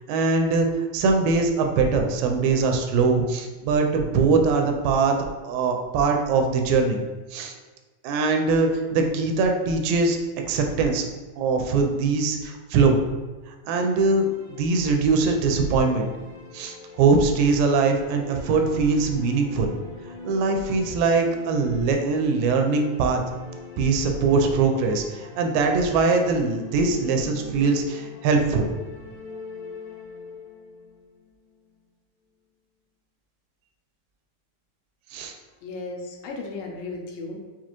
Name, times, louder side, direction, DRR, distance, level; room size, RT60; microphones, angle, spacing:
voice 1, 0.1-0.7 0.9-5.2 5.4-7.0 7.3-7.5 8.0-10.2 10.5-11.1 11.4-13.0 13.7-16.1 16.5-19.7 20.2-23.2 23.8-28.7 35.1-35.3, right 4 dB, 90° right, 3 dB, 2.3 m, -22 dB
sound 1, 13.9-31.8, left 4 dB, 65° left, 2.2 m, -42 dB
voice 2, 35.6-37.4, left 3 dB, 80° left, 1 dB, 2.1 m, -35 dB
6.0 x 2.3 x 2.9 m, 1.3 s
omnidirectional pair, 3.9 m